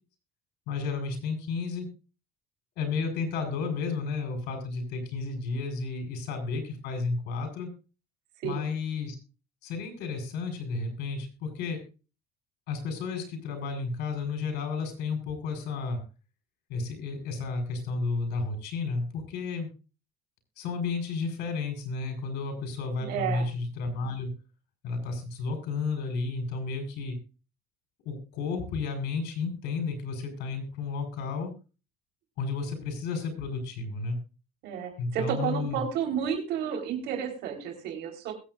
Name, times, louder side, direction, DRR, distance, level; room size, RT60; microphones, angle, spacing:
voice 1, 0.7-1.9 2.8-7.7 8.4-9.1 9.6-11.8 12.7-16.0 16.7-19.7 20.6-24.3 24.8-27.2 28.0-31.5 32.4-34.2 35.0-35.8, left 4 dB, 85° left, 4 dB, 4.8 m, -32 dB
voice 2, 8.4-8.7 23.0-23.5 34.6-38.3, right 8 dB, 85° right, 2 dB, 4.1 m, -31 dB
21.5 x 8.5 x 2.5 m, 0.32 s
cardioid pair, 110°, 17 cm